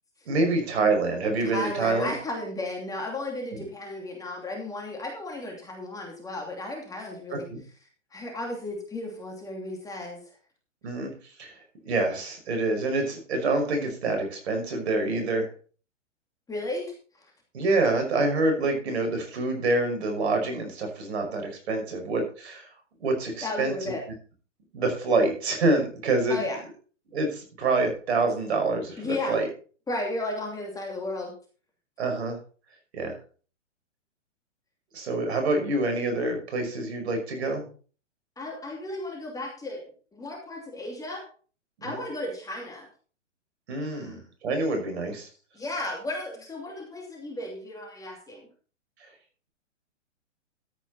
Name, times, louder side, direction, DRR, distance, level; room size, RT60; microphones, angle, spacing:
voice 1, 0.3-2.1 7.3-7.6 10.8-11.1 11.4-11.5 11.9-15.5 17.5-22.7 23.0-23.9 24.7-26.4 27.1-29.5 32.0-32.4 32.9-33.2 34.9-37.7 41.8-42.0 43.7-45.3, right 2 dB, 60° right, 5 dB, 5.7 m, -26 dB
voice 2, 1.5-7.5 8.1-10.2 16.5-16.9 23.4-24.0 26.3-26.6 29.0-29.4 29.9-31.3 38.4-39.8 40.1-41.2 41.8-42.9 43.8-44.2 45.5-48.5, left 2 dB, 10° left, 1 dB, 2.7 m, -34 dB
13.5 x 9.0 x 4.2 m, 0.40 s
hypercardioid pair, 125°, 37 cm